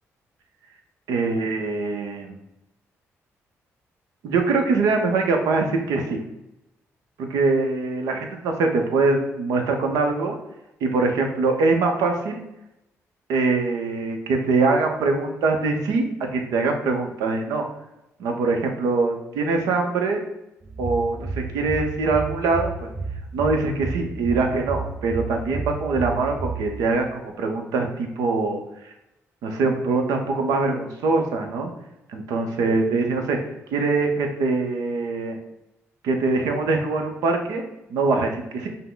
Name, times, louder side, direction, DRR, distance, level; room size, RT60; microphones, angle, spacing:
voice 1, 1.1-2.4 4.2-6.2 7.2-10.4 10.8-12.4 13.3-17.6 18.2-20.2 20.8-22.9 23.3-28.6 29.4-31.7 32.1-33.4 33.7-35.4 36.0-37.6 37.9-38.3 38.6-38.7, right 3 dB, 85° right, 3 dB, 0.7 m, -23 dB
sound 1, 20.6-27.1, right 4 dB, 35° right, 0.7 m, -32 dB
5.5 x 2.1 x 3.9 m, 0.88 s
cardioid pair, 75°, 6 cm